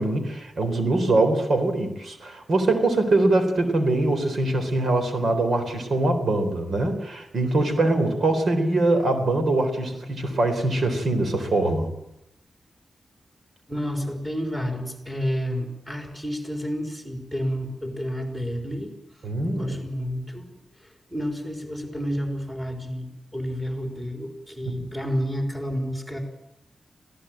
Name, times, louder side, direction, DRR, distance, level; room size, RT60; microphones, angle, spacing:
voice 1, 0.0-11.9 19.2-19.7 24.7-24.8, right 2 dB, 60° right, 7 dB, 4.0 m, -23 dB
voice 2, 13.7-18.9 19.5-20.5 20.8-26.2, equal, 5° right, 3 dB, 4.2 m, -30 dB
26.0 x 16.5 x 9.0 m, 0.86 s
wide cardioid pair, 130°, 0 cm